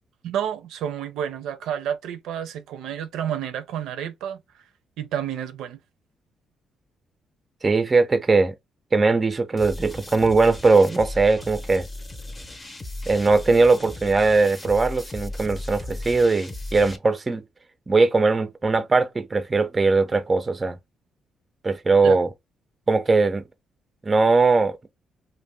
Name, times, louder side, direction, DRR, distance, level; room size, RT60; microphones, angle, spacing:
voice 1, 0.2-4.4 5.0-5.8 22.0-22.2, right 9 dB, 85° right, 0.5 m, -30 dB
voice 2, 7.6-8.5 8.9-11.9 13.1-17.4 17.9-20.8 21.6-22.3 22.9-23.4 24.1-24.7, right 3 dB, 25° right, 0.4 m, -20 dB
sound 1, 9.6-17.0, left 1 dB, 20° left, 0.6 m, -36 dB
2.7 x 2.1 x 3.3 m
cardioid pair, 90°, 0 cm